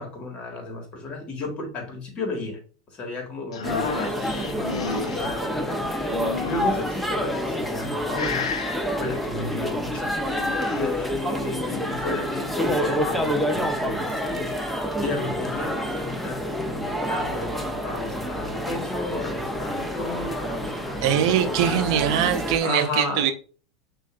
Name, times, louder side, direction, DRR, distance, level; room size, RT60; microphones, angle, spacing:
voice 1, 0.0-2.6 2.9-8.6 9.0-10.1 10.7-21.8 22.6-23.3, left 2 dB, 35° left, 1.8 m, -33 dB
sound 1, 3.5-5.3 6.1-6.9 7.6-7.9 8.1-8.8 10.1-10.8, left 6 dB, 85° left, 0.6 m, -32 dB
sound 2, 3.6-22.6, equal, 5° left, 0.9 m, -28 dB
voice 2, 21.0-23.3, right 9 dB, 65° right, 0.6 m, -22 dB
6.2 x 2.6 x 2.5 m
hypercardioid pair, 100°, 3 cm